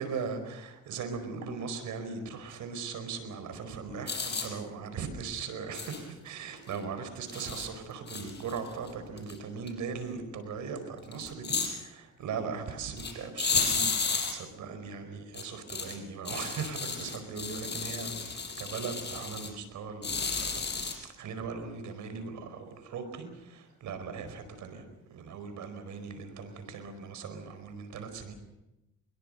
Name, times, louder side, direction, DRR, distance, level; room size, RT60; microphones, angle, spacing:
voice 1, 0.0-28.3, right 5 dB, 75° right, 9 dB, 4.8 m, -39 dB
sound 1, 4.1-4.5 5.7-6.0 6.7-6.8 7.3-7.7 8.1-8.9 9.2-9.3 9.7-9.8 11.1-11.7 13.0-13.1 13.4-14.3 15.3-15.9 16.3-19.5 20.0-20.9, left 5 dB, 35° left, 5.8 m, -32 dB
23.0 x 21.5 x 6.7 m, 0.95 s
cardioid pair, 90°, 30 cm